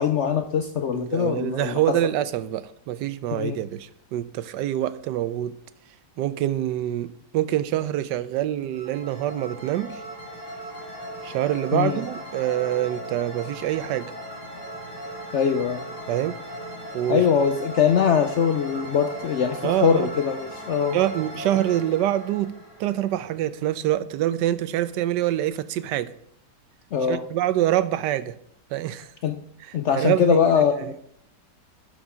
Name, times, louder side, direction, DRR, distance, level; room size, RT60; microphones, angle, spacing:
voice 1, 0.0-2.0 3.3-3.6 11.7-12.0 15.3-15.8 17.1-21.0 26.9-27.2 29.2-29.4 29.7-31.0, left 7 dB, 65° left, 0.7 m, -22 dB
voice 2, 0.9-5.6 6.2-10.0 11.2-14.1 16.1-16.4 16.9-17.2 19.6-20.1 20.9-22.5 22.8-26.1 27.1-28.4 28.7-29.1 29.9-30.6, right 13 dB, 85° right, 1.2 m, -25 dB
sound 1, 8.7-23.5, right 1 dB, 30° left, 2.8 m, -38 dB
11.5 x 5.2 x 5.0 m
omnidirectional pair, 1.8 m